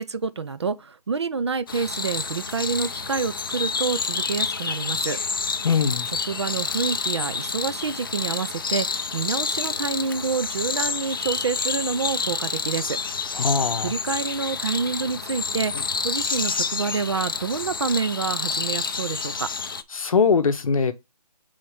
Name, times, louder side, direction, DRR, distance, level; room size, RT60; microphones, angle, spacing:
voice 1, 0.0-5.2 6.3-13.0 13.8-19.5, right 5 dB, 40° right, 0.5 m, -28 dB
sound 1, 1.7-19.8, left 5 dB, 35° left, 0.5 m, -28 dB
voice 2, 5.6-6.1 13.3-13.9 19.9-20.9, left 5 dB, 55° left, 0.9 m, -21 dB
7.5 x 4.1 x 3.2 m
hypercardioid pair, 165°, 21 cm